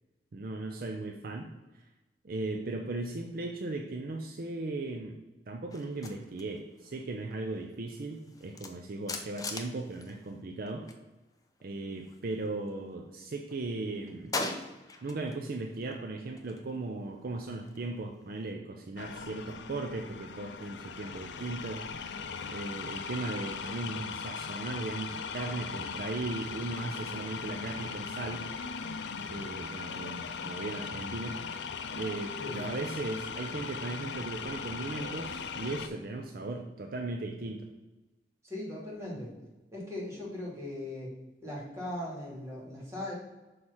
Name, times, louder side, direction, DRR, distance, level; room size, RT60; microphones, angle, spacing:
voice 1, 0.3-1.5 1.7-1.8 2.2-5.2 5.5-10.9 11.6-14.3 15.0-22.1 22.5-28.5 29.3-31.4 32.0-37.7, right 2 dB, 55° right, 3 dB, 0.5 m, -37 dB
sound 1, 5.7-11.0 11.3-12.9 13.3-15.4 15.7-18.5, left 3 dB, 20° left, 0.6 m, -43 dB
sound 2, 19.0-35.9, left 6 dB, 80° left, 0.4 m, -39 dB
voice 2, 32.4-32.7 38.4-39.3 39.7-41.1 41.4-43.1, left 1 dB, 15° right, -4 dB, 2.2 m, -39 dB
6.2 x 3.3 x 5.5 m, 1.1 s
head